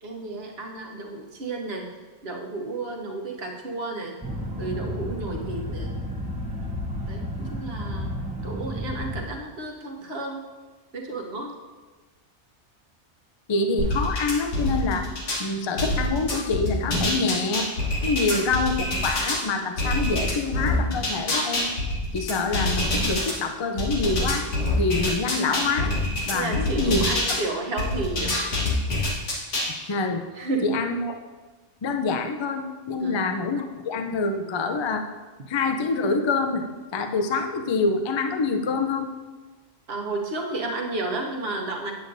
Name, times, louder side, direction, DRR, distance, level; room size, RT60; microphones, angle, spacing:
voice 1, 0.0-1.9 2.2-4.2 4.6-6.0 7.1-8.1 8.4-10.4 10.9-11.6 18.2-18.4 26.3-28.4 30.3-30.7 33.0-33.3 39.9-41.9, right 2 dB, 60° right, 0 dB, 1.2 m, -32 dB
sound 1, 4.2-9.3, equal, 10° right, 0.6 m, -32 dB
voice 2, 13.5-15.1 15.4-17.7 18.0-21.7 22.1-24.4 24.8-25.9 26.3-27.0 27.3-27.4 29.8-30.2 30.6-31.1 31.8-35.1 35.5-36.6 36.9-39.1, left 3 dB, 45° left, 6 dB, 0.3 m, -26 dB
sound 2, 13.8-15.4 15.8-19.4 19.8-23.3 23.8-27.4 27.8-29.7, left 1 dB, 90° left, 1.8 m, -26 dB
9.2 x 8.1 x 2.6 m, 1.3 s
omnidirectional pair, 1.2 m